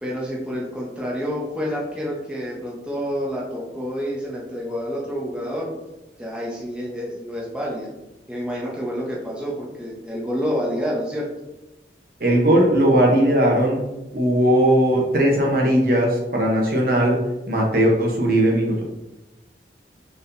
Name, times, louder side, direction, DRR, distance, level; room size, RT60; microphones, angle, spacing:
voice 1, 0.0-5.7 6.2-7.9 8.3-11.3, equal, 5° right, -4 dB, 0.8 m, -28 dB
voice 2, 12.2-13.8 14.1-17.2 17.5-18.8, right 1 dB, 55° right, -1 dB, 0.9 m, -18 dB
4.4 x 3.4 x 2.7 m, 0.98 s
head